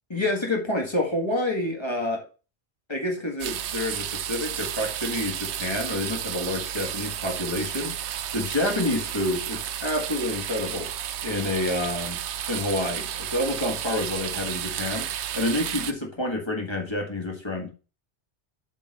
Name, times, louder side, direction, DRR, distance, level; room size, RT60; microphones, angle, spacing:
voice 1, 0.1-2.2 2.9-8.0 8.3-10.9 11.2-15.1 15.3-17.7, left 1 dB, 25° left, 1.7 m, -28 dB
sound 1, 3.4-15.9, right 10 dB, 90° right, 0.9 m, -32 dB
7.7 x 3.8 x 5.3 m
omnidirectional pair, 1.1 m